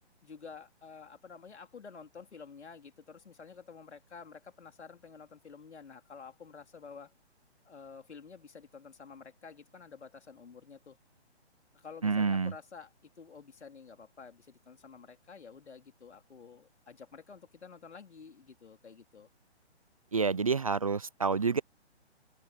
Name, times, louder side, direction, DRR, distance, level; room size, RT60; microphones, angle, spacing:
voice 1, 0.2-7.1 7.7-11.0 11.7-12.9 13.2-19.3, left 5 dB, 75° left, 3.7 m, -50 dB
voice 2, 12.0-12.5 20.1-21.6, right 5 dB, 30° right, 0.5 m, -28 dB
open air
hypercardioid pair, 165°, 34 cm